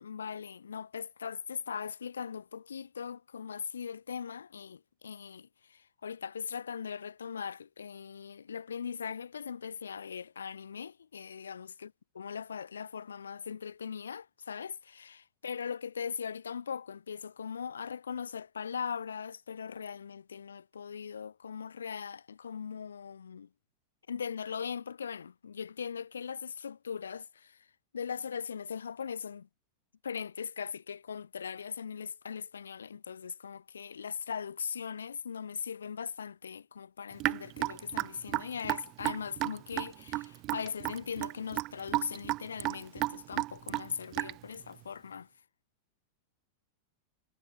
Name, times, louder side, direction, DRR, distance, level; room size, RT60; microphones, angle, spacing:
voice 1, 0.0-23.5 24.1-27.7 27.9-29.5 30.0-45.3, left 7 dB, 70° left, 2.5 m, -40 dB
Raindrop / Drip, 37.2-44.6, right 19 dB, 40° right, 0.7 m, -33 dB
figure-of-eight pair, 90°, 0 cm